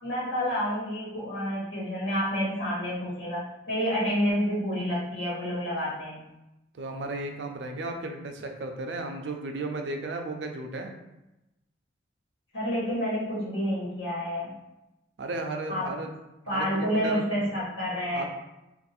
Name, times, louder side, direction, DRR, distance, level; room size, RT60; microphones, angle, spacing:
voice 1, 0.0-6.3 12.5-14.5 15.7-15.9 16.5-18.3, equal, 85° left, -9 dB, 1.3 m, -29 dB
voice 2, 6.7-10.9 15.2-16.1 16.5-17.3 18.1-18.2, right 2 dB, 75° right, 4 dB, 0.5 m, -34 dB
2.6 x 2.5 x 4.1 m, 0.94 s
head